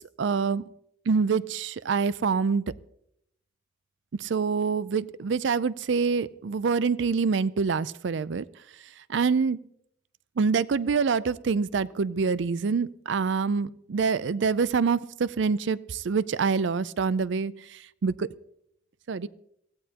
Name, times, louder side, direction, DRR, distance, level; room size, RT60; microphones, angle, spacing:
voice 1, 0.2-0.6 1.1-2.6 4.2-8.4 9.1-9.6 10.4-17.5 18.0-18.3 19.1-19.3, right 5 dB, 65° right, 18 dB, 0.4 m, -26 dB
23.5 x 15.0 x 2.9 m, 0.75 s
head